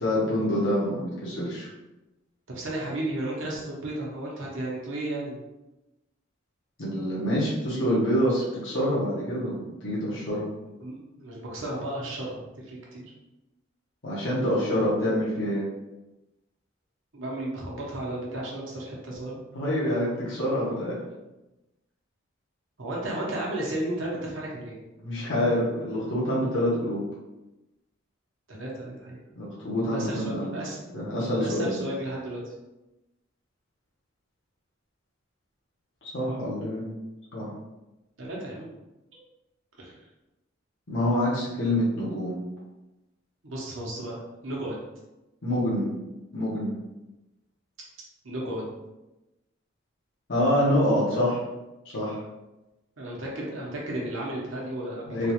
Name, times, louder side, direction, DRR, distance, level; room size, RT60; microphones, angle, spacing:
voice 1, 0.0-1.7 6.8-10.5 14.0-15.7 19.5-21.0 25.0-27.0 29.4-30.5 30.9-31.8 36.0-36.9 37.3-37.5 40.9-42.4 45.4-45.9 46.3-46.7 50.3-51.4 51.9-52.2 55.1-55.3, equal, 65° left, -7 dB, 1.1 m, -26 dB
voice 2, 2.5-5.4 10.8-13.0 17.1-19.4 22.8-24.8 28.5-29.2 29.8-31.0 31.4-32.5 38.2-38.7 39.8-39.9 43.4-44.8 48.2-48.7 53.0-55.3, right 1 dB, 75° right, -3 dB, 1.0 m, -34 dB
3.7 x 2.4 x 3.0 m, 0.99 s
head